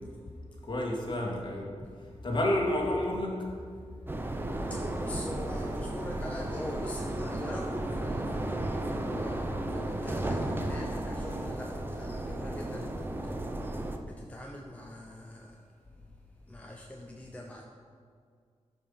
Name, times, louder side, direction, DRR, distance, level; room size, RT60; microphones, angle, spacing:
voice 1, 0.6-1.7 2.2-3.5, left 1 dB, 40° left, -2 dB, 2.0 m, -30 dB
sound 1, 4.1-14.0, right 1 dB, 20° right, 0.7 m, -34 dB
voice 2, 4.7-15.7 16.5-17.6, left 1 dB, 10° left, 0 dB, 0.8 m, -43 dB
13.0 x 5.5 x 5.7 m, 2.1 s
wide cardioid pair, 130°, 12 cm